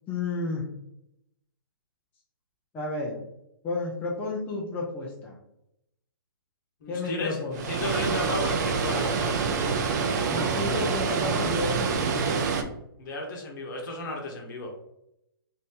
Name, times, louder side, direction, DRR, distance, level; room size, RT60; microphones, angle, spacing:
voice 1, 0.1-0.7 2.7-3.2 3.6-5.4 6.9-7.7 10.3-12.5, left 3 dB, 15° left, -3 dB, 0.5 m, -32 dB
voice 2, 6.8-9.4 13.0-14.7, left 2 dB, 50° left, 1 dB, 1.0 m, -34 dB
Water, 7.5-12.6, right 5 dB, 45° right, 0.5 m, -26 dB
2.7 x 2.5 x 3.6 m, 0.81 s
hypercardioid pair, 135°, 13 cm